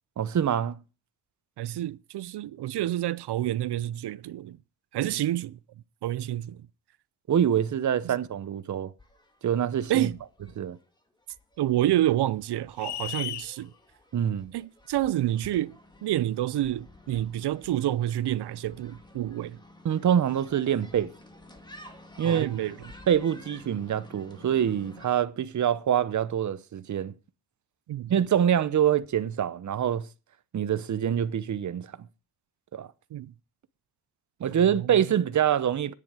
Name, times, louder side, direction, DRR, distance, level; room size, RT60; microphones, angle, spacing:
voice 1, 0.2-0.8 7.3-8.9 9.4-10.1 10.6-10.8 14.1-14.5 19.8-21.1 22.2-22.5 23.1-27.1 28.1-30.1 30.5-31.9 32.7-32.9 34.4-35.9, right 9 dB, 45° right, 0.8 m, -25 dB
voice 2, 1.6-4.6 4.9-5.6 6.0-6.6 8.0-8.1 9.9-10.2 11.6-13.7 14.5-15.7 16.0-19.6 22.2-22.9 27.9-28.1 33.1-33.3 34.8-35.1, right 13 dB, 75° right, 0.7 m, -28 dB
sound 1, 9.0-25.1, left 1 dB, 10° left, 1.8 m, -51 dB
sound 2, 12.8-13.5, left 13 dB, 80° left, 0.7 m, -34 dB
11.0 x 9.8 x 4.9 m
wide cardioid pair, 170°, 40 cm